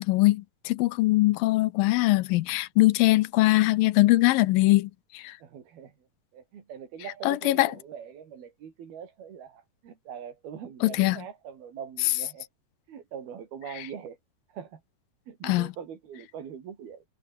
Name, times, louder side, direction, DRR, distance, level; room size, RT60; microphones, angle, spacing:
voice 1, 0.0-5.4 7.2-7.7 10.8-11.2 13.8-13.9 15.4-15.7, left 19 dB, 80° left, 2.3 m, -22 dB
voice 2, 5.4-5.9 6.3-12.5 12.9-14.2 14.5-14.8 15.3-17.0, right 8 dB, 85° right, 5.2 m, -42 dB
omnidirectional pair, 4.3 m